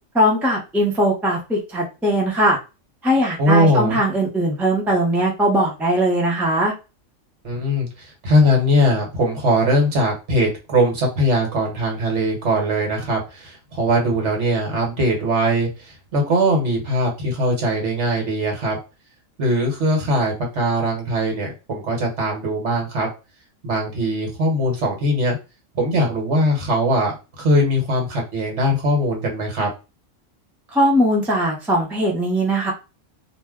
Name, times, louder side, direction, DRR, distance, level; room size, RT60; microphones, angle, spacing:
voice 1, 0.1-2.6 3.0-6.7 30.7-32.7, equal, ahead, -2 dB, 0.6 m, -20 dB
voice 2, 3.4-4.0 7.4-18.8 19.4-23.1 23.6-25.4 25.7-29.7, equal, 65° right, 0 dB, 1.3 m, -20 dB
2.6 x 2.1 x 3.5 m, 0.28 s
omnidirectional pair, 1.3 m